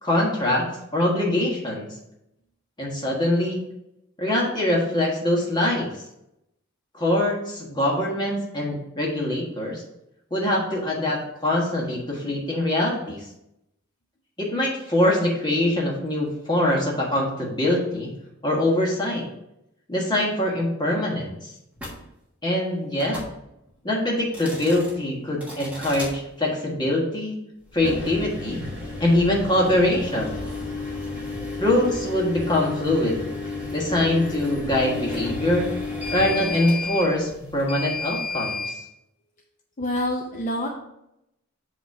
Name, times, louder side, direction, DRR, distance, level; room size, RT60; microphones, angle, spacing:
voice 1, 0.0-2.0 2.8-3.7 4.2-5.9 6.9-9.8 10.3-13.2 14.4-18.1 18.4-19.3 19.9-21.5 22.4-23.2 23.8-27.4 27.7-28.6 29.0-30.4 31.6-33.2 33.7-35.7 36.1-38.7, left 1 dB, 20° left, -3 dB, 1.5 m, -23 dB
sound 1, 21.8-22.0 22.9-23.3 24.2-24.9 25.4-26.1 27.7-38.8, left 3 dB, 5° right, 1.4 m, -32 dB
voice 2, 39.8-40.7, left 1 dB, 35° left, -1 dB, 0.6 m, -26 dB
8.0 x 3.0 x 4.8 m, 0.84 s
head